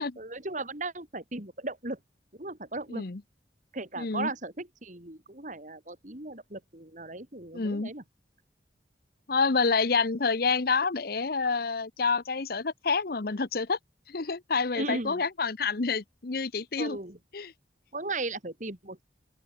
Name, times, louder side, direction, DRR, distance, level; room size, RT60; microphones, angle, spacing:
voice 1, 0.0-2.0 2.3-3.0 3.7-8.0 14.7-15.2 16.8-17.2 17.9-19.0, right 2 dB, 45° right, 3.6 m, -37 dB
voice 2, 2.9-3.2 4.0-4.3 7.5-7.9 9.3-13.8 14.1-17.0 17.3-17.5, left 4 dB, 55° left, 0.9 m, -28 dB
open air
head